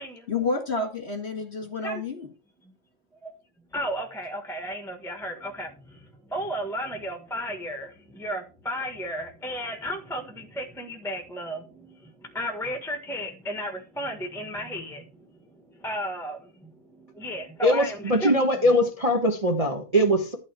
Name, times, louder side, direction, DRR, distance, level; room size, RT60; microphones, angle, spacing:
voice 1, 0.3-2.3, left 3 dB, 30° left, 1.9 m, -29 dB
voice 2, 3.7-15.3 15.8-18.3, equal, ahead, 1.1 m, -34 dB
voice 3, 17.6-20.3, equal, 20° right, 1.2 m, -22 dB
12.0 x 4.2 x 7.5 m
omnidirectional pair, 2.4 m